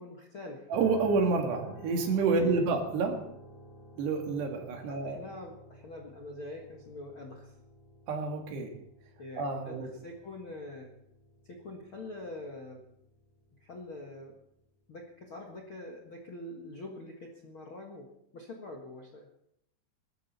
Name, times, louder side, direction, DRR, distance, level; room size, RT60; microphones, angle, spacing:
voice 1, 0.0-0.7 2.3-2.7 4.9-7.5 9.2-10.9 11.6-12.8 13.6-14.4 14.9-18.1 18.3-19.3, left 1 dB, 50° left, 0 dB, 1.5 m, -44 dB
sound 1, 0.7-14.7, equal, 5° left, 4.6 m, -52 dB
voice 2, 0.7-3.2 4.0-5.2 8.1-8.7 9.4-9.9, right 4 dB, 75° right, 3 dB, 4.0 m, -29 dB
21.0 x 13.0 x 4.3 m, 0.74 s
omnidirectional pair, 5.0 m